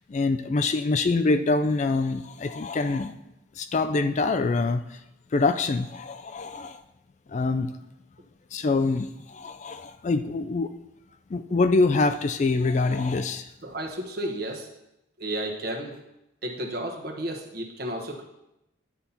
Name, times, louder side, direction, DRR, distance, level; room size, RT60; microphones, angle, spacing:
voice 1, 0.1-3.2 3.6-5.0 5.3-6.8 7.3-7.7 8.5-10.7 11.3-13.5, left 3 dB, 35° left, 10 dB, 0.3 m, -25 dB
voice 2, 13.6-14.7 15.2-16.0 16.4-18.2, right 1 dB, 50° right, 1 dB, 1.2 m, -32 dB
10.0 x 4.1 x 5.7 m, 0.87 s
head